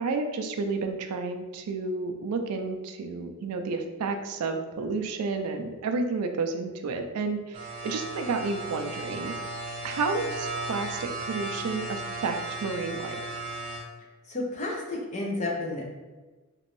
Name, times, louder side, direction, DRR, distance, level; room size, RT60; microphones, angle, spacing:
voice 1, 0.0-9.5 9.8-13.3, right 4 dB, 85° right, 6 dB, 0.4 m, -31 dB
sound 1, 7.5-13.8, right 2 dB, 25° right, 0.6 m, -35 dB
voice 2, 14.0-15.9, left 2 dB, 30° left, -1 dB, 0.6 m, -32 dB
3.0 x 2.5 x 3.0 m, 1.2 s
head